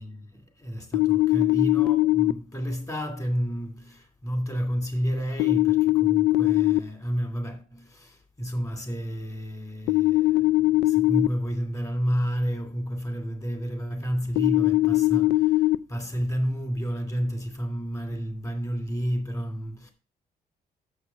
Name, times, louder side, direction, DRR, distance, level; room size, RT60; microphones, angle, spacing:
voice 1, 0.0-19.9, equal, 20° left, 2.3 m, -31 dB
sound 1, 0.9-2.3 5.4-6.8 9.9-11.3 14.4-15.7, left 17 dB, 85° left, 0.4 m, -21 dB
6.7 x 6.4 x 5.5 m
cardioid pair, 100°, 16 cm